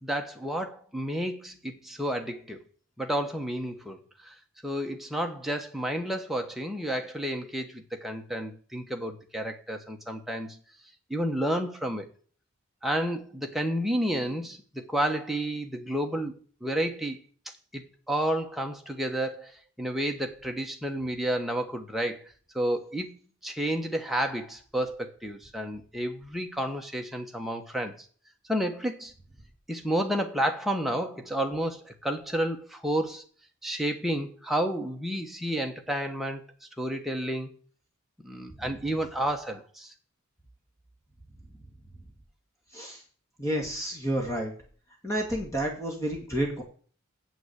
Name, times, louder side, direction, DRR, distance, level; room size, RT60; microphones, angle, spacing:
voice 1, 0.0-2.6 3.0-4.3 4.6-10.6 11.1-12.1 12.8-17.2 17.7-19.5 19.8-23.1 23.4-28.0 28.5-29.1 29.7-33.2 33.6-36.4 36.8-37.5 38.2-39.9, right 1 dB, ahead, 1.1 m, -31 dB
voice 2, 43.4-44.5 45.0-46.6, right 1 dB, 15° left, 2.0 m, -30 dB
7.9 x 6.0 x 8.0 m
head